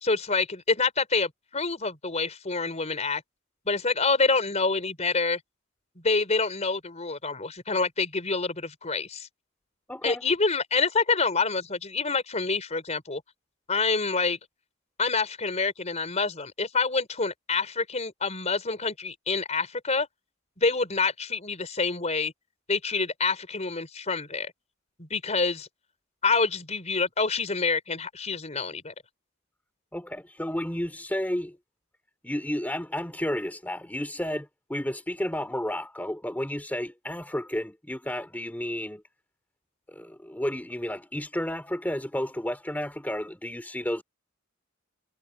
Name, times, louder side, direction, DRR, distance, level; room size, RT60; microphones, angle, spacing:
voice 1, 0.0-3.2 3.7-5.4 6.0-9.3 10.0-13.2 13.7-14.4 15.0-20.1 20.6-22.3 22.7-24.5 25.0-25.7 26.2-28.9, left 4 dB, 35° left, 4.3 m, -27 dB
voice 2, 9.9-10.2 29.9-31.6 32.2-39.0 39.9-44.0, left 1 dB, 10° left, 2.7 m, -32 dB
head